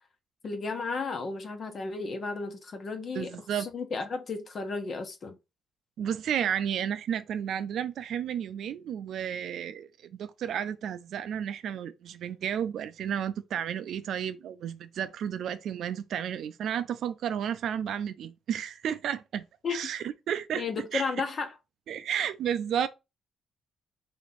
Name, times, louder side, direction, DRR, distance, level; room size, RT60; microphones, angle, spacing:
voice 1, 0.4-5.4 19.6-19.8 20.5-21.5, left 4 dB, 50° left, 1.2 m, -33 dB
voice 2, 3.2-3.7 6.0-19.4 19.7-20.6 20.9-21.1 21.9-22.9, right 9 dB, 70° right, 0.5 m, -32 dB
3.9 x 3.1 x 4.2 m
cardioid pair, 90°, 0 cm